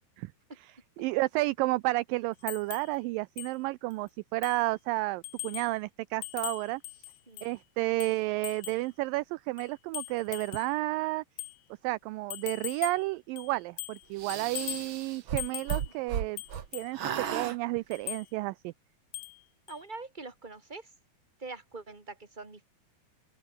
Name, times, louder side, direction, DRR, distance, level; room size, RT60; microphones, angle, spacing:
voice 1, 1.0-6.8 7.4-11.2 11.8-16.4 16.7-17.0 17.3-18.7, right 20 dB, 80° right, 2.0 m, -31 dB
sound 1, 2.5-2.9 3.4-3.5 3.9-4.0 4.4-4.7 5.2-5.8 6.2-7.6 8.0-8.9 9.6-10.7 11.4-11.6 12.3-13.1 13.4-14.1 14.3-14.9 15.4-15.9 16.4-16.9 17.9-18.3 19.1-19.4 19.7-19.8, left 24 dB, 90° left, 2.5 m, -40 dB
sound 2, 14.2-16.7 16.9-17.6, right 8 dB, 55° right, 1.4 m, -34 dB
voice 2, 19.7-20.9 21.4-22.6, right 3 dB, 10° right, 3.5 m, -44 dB
open air
omnidirectional pair, 4.4 m